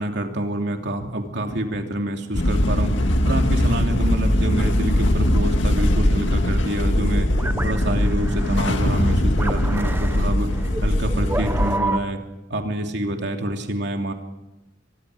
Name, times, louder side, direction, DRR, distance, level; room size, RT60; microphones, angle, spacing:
voice 1, 0.0-2.9 3.2-7.3 7.6-10.5 10.8-12.2 12.5-14.1, right 1 dB, 65° right, 3 dB, 2.9 m, -27 dB
sound 1, 2.3-11.8, left 1 dB, 75° left, 2.1 m, -20 dB
sound 2, 6.8-12.0, right 1 dB, 10° right, 0.9 m, -30 dB
24.5 x 22.0 x 5.0 m, 0.97 s
head